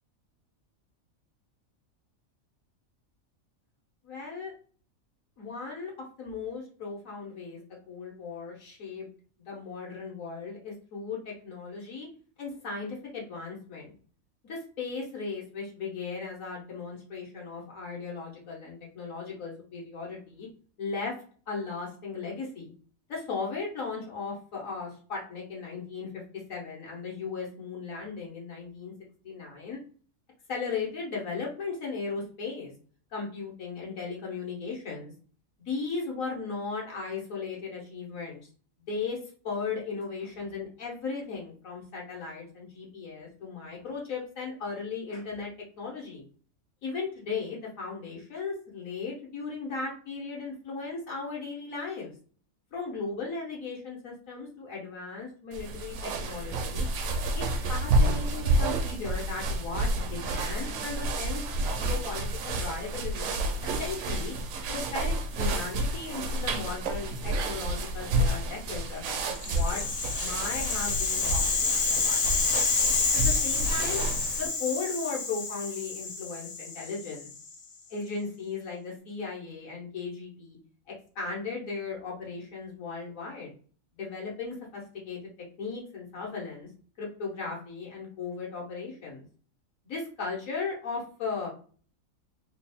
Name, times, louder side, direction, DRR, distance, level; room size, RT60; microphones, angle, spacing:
voice 1, 4.0-4.5 5.4-5.9 6.2-9.1 9.5-12.1 12.4-13.9 14.4-20.5 20.8-21.1 21.5-22.7 23.1-26.1 26.5-28.9 29.2-29.8 30.5-32.7 33.1-35.1 35.6-38.4 38.9-39.2 39.4-45.5 45.8-46.2 46.8-52.1 52.7-56.8 57.3-61.4 61.7-63.3 63.8-64.3 64.7-69.8 70.2-72.3 73.1-74.0 74.3-77.3 77.9-80.6 81.1-83.5 83.9-85.2 85.6-86.7 87.0-89.2 89.8-91.5, left 4 dB, 70° left, -3 dB, 1.5 m, -36 dB
sound 1, 55.5-74.5, right 1 dB, 75° right, 1.0 m, -30 dB
Rattle (instrument), 69.3-77.5, left 4 dB, 50° left, 0.7 m, -29 dB
3.5 x 2.5 x 3.5 m, 0.43 s
omnidirectional pair, 1.5 m